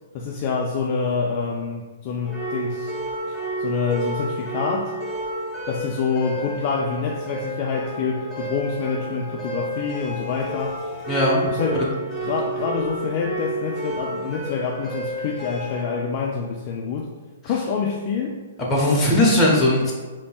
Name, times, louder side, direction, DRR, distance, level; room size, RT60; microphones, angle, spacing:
voice 1, 0.1-3.0 3.3-4.9 5.7-10.8 11.4-17.1 17.4-18.4 18.9-19.1, left 5 dB, 40° left, 0 dB, 0.3 m, -26 dB
sound 1, 2.2-15.8, right 1 dB, 5° right, 0.8 m, -31 dB
voice 2, 11.1-11.4 11.7-11.8 18.6-19.9, left 1 dB, 15° left, -5 dB, 1.0 m, -18 dB
5.2 x 2.7 x 2.3 m, 1.4 s
hypercardioid pair, 140°, 0 cm